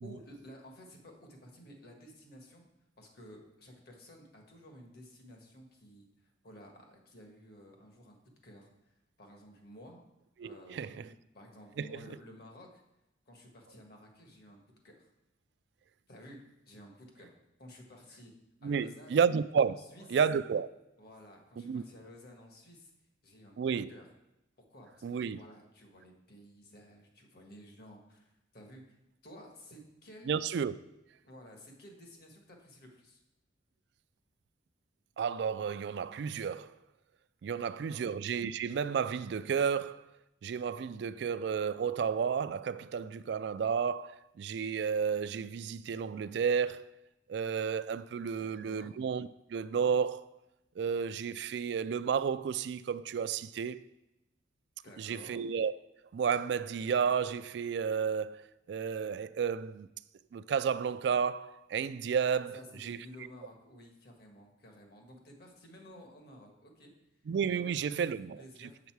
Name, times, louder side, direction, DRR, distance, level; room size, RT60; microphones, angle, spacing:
voice 1, 0.0-2.7 3.0-8.2 8.4-8.7 9.2-10.0 10.4-11.1 11.3-12.8 13.3-15.1 16.1-16.4 16.7-17.3 17.6-18.3 18.6-19.2 19.7-20.1 21.0-22.9 23.2-23.6 23.9-24.0 24.6-25.0 25.3-29.0 29.2-30.4 31.2-33.2 37.6-38.0 48.3-48.9 54.8-55.4 62.5-66.9 67.6-67.9 68.4-68.8, equal, 55° left, 1.6 m, -53 dB
voice 2, 10.4-11.0 11.8-12.0 18.6-19.8 20.1-20.7 21.6-21.8 23.6-23.9 25.0-25.4 30.3-30.7 35.2-36.7 37.4-40.1 40.4-46.9 47.3-50.2 50.8-53.8 55.0-55.7 56.1-59.9 60.3-63.0 67.3-68.7, right 6 dB, 65° right, 0.3 m, -32 dB
7.2 x 6.8 x 4.7 m
head